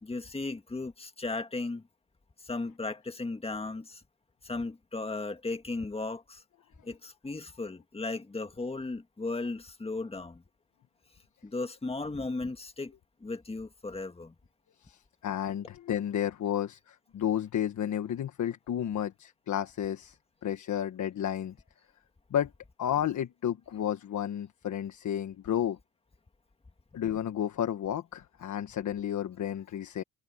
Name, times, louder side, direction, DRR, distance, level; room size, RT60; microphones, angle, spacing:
voice 1, 0.0-1.8 2.4-4.0 4.4-6.4 6.8-10.4 11.4-12.9 13.2-14.3, left 3 dB, 15° left, 2.0 m, -36 dB
voice 2, 14.8-20.2 20.4-21.5 22.3-22.5 22.8-25.8 26.9-30.0, left 10 dB, 55° left, 1.5 m, -32 dB
cardioid pair, 105°, 35 cm